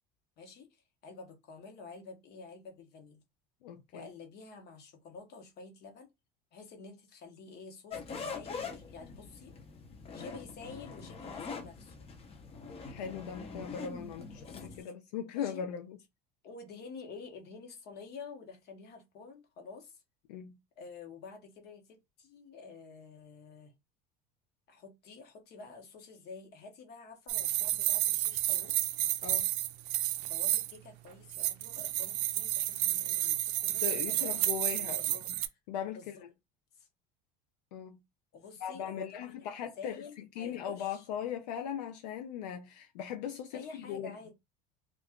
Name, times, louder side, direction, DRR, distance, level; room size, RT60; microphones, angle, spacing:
voice 1, 0.4-3.2 3.9-6.1 6.5-9.6 10.1-12.1 14.5-14.9 15.3-15.7 16.4-20.0 20.8-23.7 24.7-28.7 30.3-34.3 34.6-35.1 35.9-36.1 36.7-36.9 38.3-41.1 43.5-44.3, left 4 dB, 55° left, 1.1 m, -49 dB
voice 2, 3.6-4.1 12.9-16.0 20.3-20.6 29.2-29.5 33.7-35.4 35.7-36.3 37.7-38.0 38.6-44.1, left 9 dB, 90° left, 0.4 m, -39 dB
sound 1, 7.9-14.8, left 5 dB, 30° left, 0.7 m, -43 dB
sound 2, 27.3-30.8 31.3-35.5, right 15 dB, 75° right, 0.4 m, -31 dB
2.4 x 2.3 x 3.5 m
supercardioid pair, 95°, 20 cm